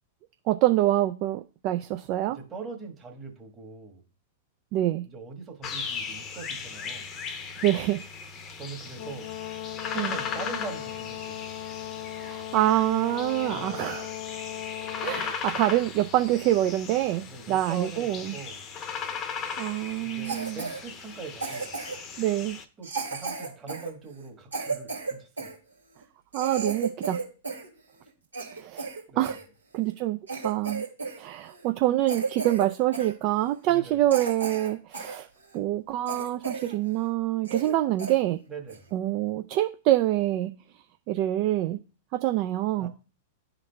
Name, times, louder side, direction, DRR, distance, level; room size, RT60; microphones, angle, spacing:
voice 1, 0.5-2.4 4.7-5.0 7.6-8.0 9.9-10.2 12.2-14.1 15.0-18.4 19.6-20.6 22.2-22.6 26.3-27.2 28.5-28.9 29.2-29.4 29.7-30.2 30.4-30.8 31.2-35.3 35.5-38.4 38.9-40.5 41.1-41.8 42.1-42.9, right 14 dB, 45° right, 7 dB, 0.3 m, -26 dB
voice 2, 2.3-4.0 5.1-7.1 8.6-9.4 9.9-11.4 13.4-13.9 17.3-18.7 20.0-21.8 22.8-25.5 29.1-29.4 33.7-34.0 38.5-38.9 42.8-42.9, right 4 dB, 25° right, 2 dB, 1.4 m, -42 dB
sound 1, 5.6-22.6, left 6 dB, 30° left, 0.7 m, -38 dB
Brass instrument, 9.0-15.4, left 17 dB, 55° left, 0.3 m, -38 dB
Cough, 20.2-20.8 21.4-22.1 22.8-25.6 26.0-26.1 26.3-27.7 28.0-29.4 29.9-30.0 30.3-31.2 31.5-31.7 32.1-32.7 32.9-33.1 33.6-33.7 34.1-35.2 35.5-35.6 36.1-36.8 37.1-37.2 37.5-37.7 38.0-38.2 38.7-38.9, right 4 dB, 90° right, 1.9 m, -33 dB
11.0 x 3.9 x 2.2 m, 0.35 s
figure-of-eight pair, 100°, 0 cm